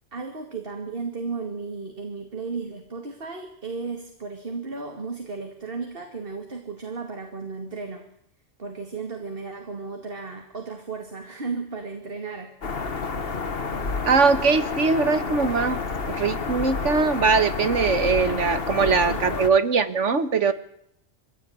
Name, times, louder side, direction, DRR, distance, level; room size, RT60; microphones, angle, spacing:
voice 1, 0.1-8.1 8.6-12.5 18.8-19.5 20.4-20.5, right 4 dB, 50° right, 4 dB, 2.5 m, -34 dB
sound 1, 12.6-19.5, left 4 dB, 55° left, 1.7 m, -29 dB
voice 2, 14.0-15.8 16.1-20.5, right 4 dB, 80° right, 12 dB, 1.8 m, -21 dB
24.0 x 16.5 x 9.5 m, 0.74 s
omnidirectional pair, 1.2 m